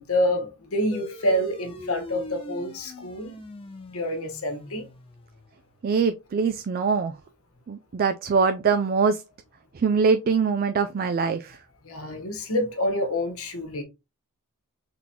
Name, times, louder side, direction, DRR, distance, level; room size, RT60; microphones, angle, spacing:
voice 1, 0.0-3.3 3.9-4.9 11.8-13.8, left 1 dB, 65° left, 1.2 m, -27 dB
sound 1, 0.9-5.8, left 2 dB, 25° left, 0.7 m, -41 dB
voice 2, 5.8-7.2 7.7-9.2 9.7-11.6, right 5 dB, 40° right, 0.3 m, -23 dB
3.9 x 3.7 x 2.9 m
head